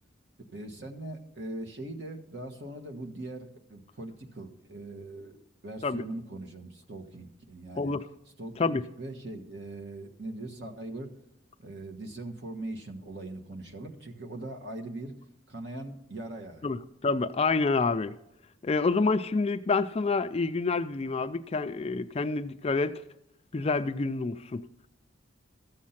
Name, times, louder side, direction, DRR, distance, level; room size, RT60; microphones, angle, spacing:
voice 1, 0.5-5.4 5.6-7.9 8.4-11.1 11.6-15.2 15.5-16.8, right 2 dB, 55° right, 1.4 m, -41 dB
voice 2, 16.6-18.2 18.6-23.0 23.5-24.6, left 3 dB, 30° left, 0.4 m, -28 dB
13.5 x 7.4 x 5.7 m
head